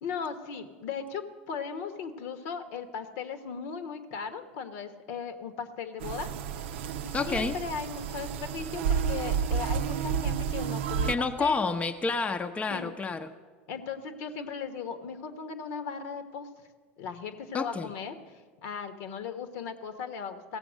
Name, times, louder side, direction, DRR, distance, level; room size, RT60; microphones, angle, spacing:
voice 1, 0.0-6.3 6.6-6.8 7.0-11.7 12.7-12.9 13.7-16.5 17.0-18.2 18.6-20.6, left 6 dB, 65° left, 9 dB, 1.2 m, -37 dB
sound 1, 6.0-11.1, right 7 dB, 70° right, 0.5 m, -31 dB
voice 2, 7.1-7.6 11.1-13.3 17.5-17.9, left 4 dB, 20° left, 7 dB, 0.6 m, -29 dB
16.5 x 7.0 x 6.2 m, 1.5 s
hypercardioid pair, 85°, 6 cm